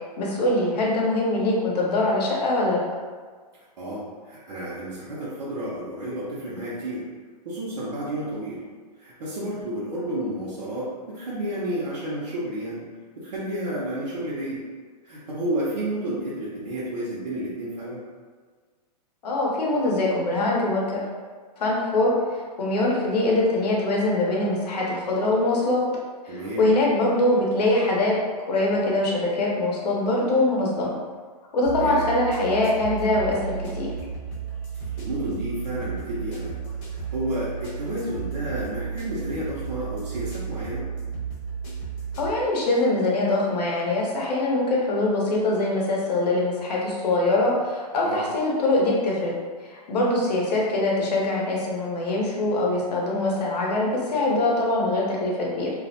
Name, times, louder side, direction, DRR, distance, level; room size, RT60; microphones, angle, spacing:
voice 1, 0.2-2.8 19.2-20.8 21.6-25.8 26.2-28.1 28.5-30.9 31.5-33.9 42.2-49.3 49.6-55.7, left 2 dB, 75° left, -3 dB, 0.8 m, -23 dB
voice 2, 3.8-7.0 7.4-8.6 9.0-12.9 13.2-14.6 15.0-18.0 26.3-26.7 31.8-32.1 34.8-36.6 36.9-40.8 48.0-48.2, right 1 dB, 90° right, -8 dB, 0.7 m, -31 dB
sound 1, 31.6-42.3, right 6 dB, 30° left, 0.8 m, -33 dB
2.4 x 2.0 x 2.7 m, 1.5 s
hypercardioid pair, 165°, 21 cm